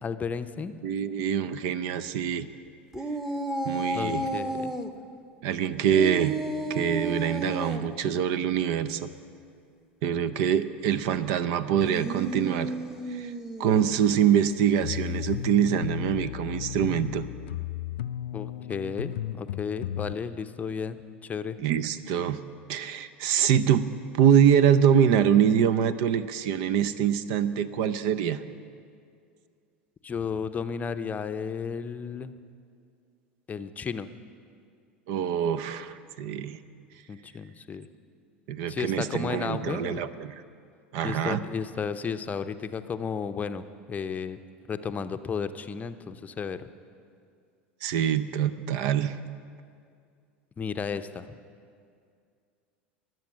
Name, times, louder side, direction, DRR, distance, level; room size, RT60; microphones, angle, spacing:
voice 1, 0.0-0.7 3.9-4.7 18.3-21.0 21.2-21.6 30.0-32.3 33.5-34.1 37.1-37.9 38.7-40.1 41.0-44.4 44.7-46.7 50.6-51.3, left 6 dB, 25° left, 10 dB, 0.6 m, -33 dB
voice 2, 0.8-2.5 3.6-4.2 5.4-6.4 6.7-9.1 10.0-12.7 13.1-13.3 13.6-17.2 21.6-22.4 22.7-23.9 24.1-28.4 35.1-36.6 38.5-40.3 40.9-41.4 47.8-49.2, right 8 dB, 60° right, 14 dB, 0.6 m, -24 dB
sound 1, 2.9-4.9 5.9-7.9 11.7-13.9, right 1 dB, 10° right, 1.1 m, -32 dB
sound 2, 14.8-20.1, left 11 dB, 70° left, 0.4 m, -34 dB
22.5 x 7.7 x 6.2 m, 2.3 s
hypercardioid pair, 80°, 6 cm